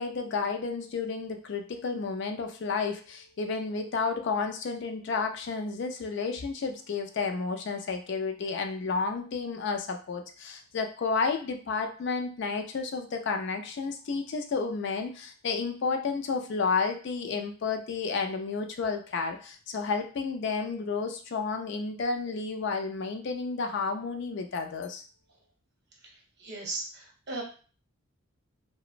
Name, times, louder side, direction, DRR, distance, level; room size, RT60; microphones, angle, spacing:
voice 1, 0.0-25.0, left 4 dB, 55° left, 4 dB, 0.3 m, -31 dB
voice 2, 26.0-27.4, right 2 dB, 50° right, -1 dB, 0.7 m, -38 dB
2.9 x 2.1 x 2.4 m, 0.39 s
head